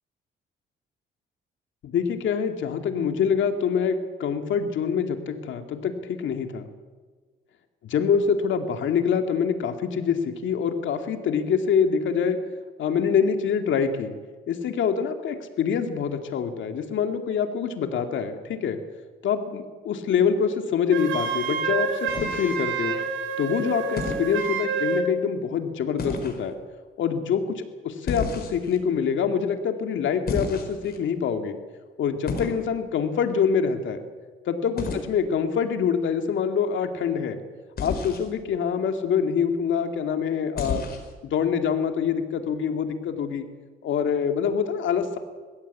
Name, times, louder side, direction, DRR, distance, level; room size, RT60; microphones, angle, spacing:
voice 1, 1.8-6.7 7.9-12.4 12.8-14.1 14.5-18.8 19.2-23.0 23.4-26.5 27.0-31.6 32.0-34.0 34.5-37.4 37.8-40.8 41.2-43.5 43.8-45.2, left 7 dB, 75° left, 6 dB, 2.5 m, -25 dB
Wind instrument woodwind instrument, 20.9-25.1, right 5 dB, 75° right, 2.9 m, -28 dB
sound 1, 22.1-22.8 24.0-24.3 26.0-26.4 28.1-28.8 30.3-31.0 32.3-32.6 34.8-35.1 37.8-38.3 40.6-41.1, left 4 dB, 50° left, 4.8 m, -31 dB
21.5 x 16.0 x 8.5 m, 1.4 s
cardioid pair, 90°, 20 cm